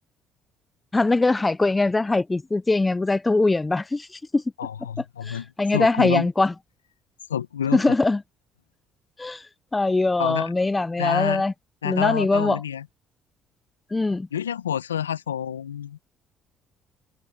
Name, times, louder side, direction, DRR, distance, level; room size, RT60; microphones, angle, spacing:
voice 1, 0.9-4.1 4.3-4.4 5.3-6.5 7.7-8.2 9.2-9.4 9.7-11.5 11.8-12.6 13.9-14.3, left 2 dB, 20° left, 0.6 m, -22 dB
voice 2, 4.6-6.3 7.3-8.0 10.2-10.5 11.0-11.4 11.8-12.9 14.3-16.0, left 9 dB, 90° left, 1.1 m, -28 dB
hypercardioid pair, 50°, 0 cm